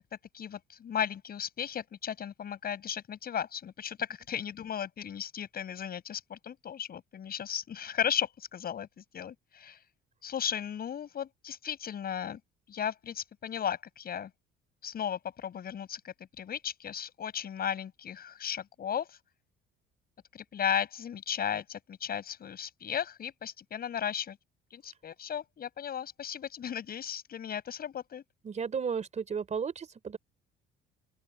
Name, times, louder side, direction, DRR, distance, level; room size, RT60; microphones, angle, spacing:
voice 1, 0.3-9.8 10.2-12.4 12.7-14.3 14.8-19.2 20.3-24.4 24.7-28.2, left 8 dB, 45° left, 7.4 m, -35 dB
voice 2, 28.4-30.2, right 6 dB, 35° right, 4.0 m, -33 dB
open air
cardioid pair, 120°, 21 cm